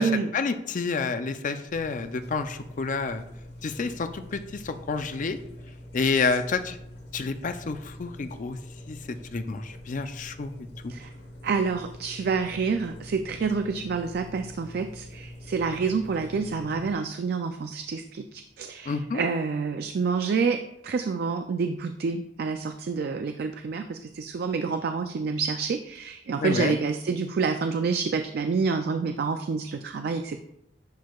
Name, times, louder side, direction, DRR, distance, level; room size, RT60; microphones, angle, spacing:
voice 1, 0.0-3.2 3.6-5.4 5.9-6.8 7.1-8.6 8.9-9.0 9.3-10.9 18.9-19.2 26.4-26.8, left 4 dB, 45° left, 9 dB, 0.5 m, -29 dB
sound 1, 1.7-16.9, left 1 dB, 65° left, 1.7 m, -45 dB
voice 2, 11.4-30.4, right 5 dB, 60° right, 7 dB, 0.4 m, -28 dB
10.5 x 4.6 x 2.3 m, 0.82 s
head